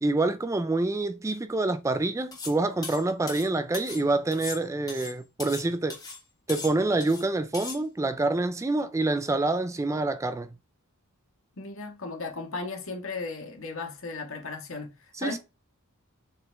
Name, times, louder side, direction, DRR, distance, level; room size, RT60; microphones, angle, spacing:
voice 1, 0.0-6.0 6.5-10.5 15.2-15.4, right 2 dB, 15° right, 0.3 m, -27 dB
sound 1, 2.3-2.6 2.8-4.0 4.3-5.7 5.9-6.2 6.5-7.2 7.5-7.8, left 4 dB, 15° left, 1.5 m, -39 dB
voice 2, 11.6-15.4, left 3 dB, 60° left, 1.7 m, -36 dB
6.9 x 4.2 x 3.4 m
head